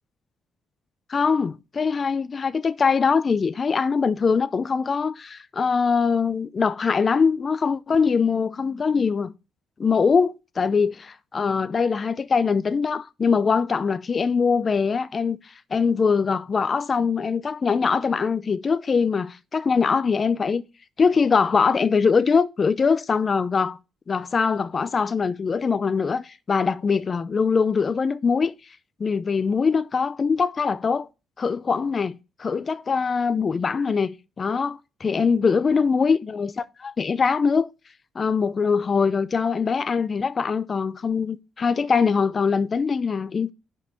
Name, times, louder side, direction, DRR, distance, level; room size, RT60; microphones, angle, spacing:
voice 1, 1.1-9.3 9.8-15.4 15.7-20.6 21.0-23.8 24.1-28.5 29.0-31.1 31.4-37.7 38.2-43.5, left 5 dB, 40° left, 0.5 m, -22 dB
6.2 x 5.5 x 6.4 m
cardioid pair, 90°, 0 cm